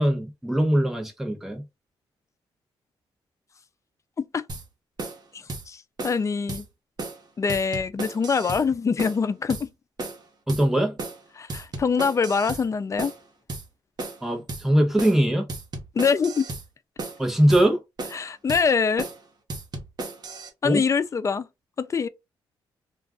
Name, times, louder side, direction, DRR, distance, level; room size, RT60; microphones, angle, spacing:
voice 1, 0.0-1.6 10.5-11.0 14.2-15.5 17.2-17.8 20.6-20.8, right 1 dB, 5° right, 0.9 m, -21 dB
sound 1, 4.5-4.7 5.0-5.2 5.5-5.7 6.0-6.2 6.5-6.6 7.0-7.2 7.5-8.7 9.0-9.2 9.5-9.7 10.0-10.2 10.5-10.7 11.0-11.2 11.5-12.7 13.0-13.2 13.5-13.7 14.0-14.2 14.5-14.7 15.0-15.2 15.5-16.7 17.0-17.2 17.5-17.7 18.0-18.2 18.5-18.7 19.0-19.2 19.5-20.5, right 2 dB, 45° right, 1.0 m, -34 dB
voice 2, 5.3-6.7 7.4-9.7 11.4-13.1 15.9-16.5 18.1-19.1 20.6-21.5 21.8-22.1, left 5 dB, 35° left, 0.4 m, -24 dB
2.3 x 2.3 x 3.6 m
cardioid pair, 80°, 10 cm